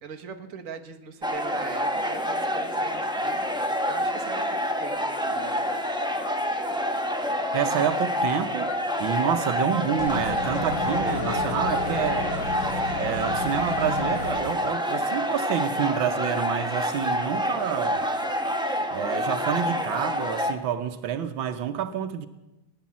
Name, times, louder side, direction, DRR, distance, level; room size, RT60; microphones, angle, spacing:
voice 1, 0.0-5.6, right 6 dB, 45° right, 1.5 m, -40 dB
sound 1, 1.2-20.5, equal, 5° right, 0.4 m, -27 dB
voice 2, 7.2-12.4 13.0-18.1 18.9-22.3, right 9 dB, 80° right, 1.6 m, -28 dB
sound 2, 10.0-14.4, left 3 dB, 55° left, 5.9 m, -33 dB
sound 3, 10.7-13.4, left 3 dB, 80° left, 3.0 m, -36 dB
19.0 x 10.5 x 7.4 m
omnidirectional pair, 2.1 m